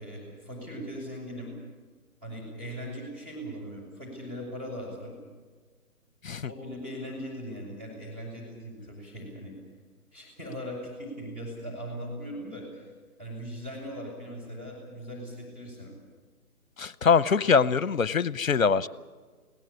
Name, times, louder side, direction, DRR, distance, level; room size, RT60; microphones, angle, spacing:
voice 1, 0.0-1.5 2.2-5.2 6.5-9.6 10.1-12.9 13.2-15.9, equal, 15° right, -6 dB, 6.5 m, -39 dB
voice 2, 16.8-18.9, left 5 dB, 60° left, 19 dB, 0.8 m, -23 dB
22.0 x 17.5 x 8.6 m, 1.4 s
figure-of-eight pair, 145°, 45 cm